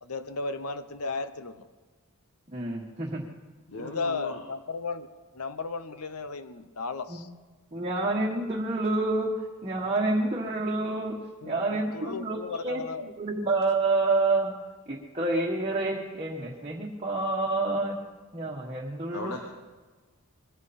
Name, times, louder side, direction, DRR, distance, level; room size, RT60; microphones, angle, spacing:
voice 1, 0.0-1.7 3.8-5.1 5.3-7.3 11.4-13.1, left 4 dB, 85° left, 11 dB, 1.0 m, -35 dB
voice 2, 2.5-3.2 7.1-7.2 7.7-12.4 12.6-12.8 13.2-14.5 14.9-18.0 18.3-19.4, right 2 dB, 25° right, -3 dB, 1.4 m, -28 dB
voice 3, 3.7-4.4 19.1-19.4, left 2 dB, 70° left, 2 dB, 1.5 m, -37 dB
21.0 x 15.5 x 4.3 m, 1.3 s
head